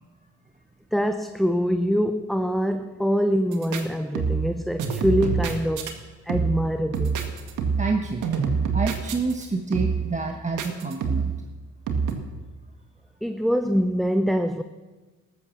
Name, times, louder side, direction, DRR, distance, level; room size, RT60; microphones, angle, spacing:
voice 1, 0.9-5.9 6.3-7.2 13.2-14.6, equal, ahead, 0.6 m, -24 dB
sound 1, 3.5-3.8 4.1-4.5 4.8-5.9 6.3-6.7 6.9-8.0 8.2-9.4 9.7-10.1 10.6-11.4 11.9-12.1, right 6 dB, 85° right, 1.9 m, -26 dB
voice 2, 7.8-8.3 8.7-11.3, right 3 dB, 25° right, 1.2 m, -28 dB
14.0 x 12.5 x 7.3 m
cardioid pair, 90°, 30 cm